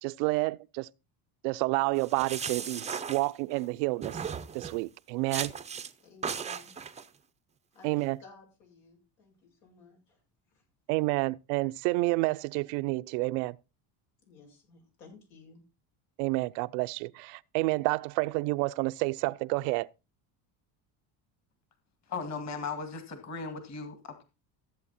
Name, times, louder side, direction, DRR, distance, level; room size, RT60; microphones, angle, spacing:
voice 1, 0.0-0.9 1.4-4.2 4.5-5.5 7.8-8.2 10.9-13.6 16.2-19.9, right 23 dB, 85° right, 0.6 m, -29 dB
sound 1, 2.0-3.7 4.0-4.8 5.3-5.9 6.2-7.0, right 6 dB, 15° right, 0.5 m, -37 dB
voice 2, 6.0-6.8 7.7-10.2 10.5-10.6 14.3-15.6, left 4 dB, 85° left, 7.7 m, -56 dB
voice 3, 22.1-24.2, left 4 dB, 35° left, 2.0 m, -37 dB
14.5 x 8.0 x 4.2 m
cardioid pair, 120°, 46 cm